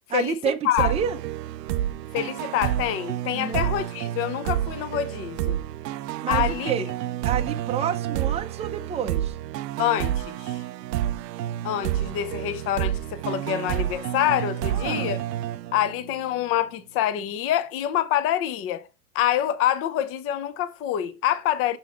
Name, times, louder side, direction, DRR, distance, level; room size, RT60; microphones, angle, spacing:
voice 1, 0.1-1.2 3.3-3.6 6.2-6.9 7.2-9.4 14.7-15.1, right 8 dB, 15° right, 0.7 m, -29 dB
sound 1, 0.8-16.2, right 12 dB, 85° right, 0.6 m, -29 dB
voice 2, 2.1-5.6 6.3-6.7 9.8-10.6 11.6-15.2 15.7-18.9 19.1-21.8, left 11 dB, 30° left, 0.7 m, -26 dB
6.3 x 4.0 x 5.7 m
hypercardioid pair, 125°, 48 cm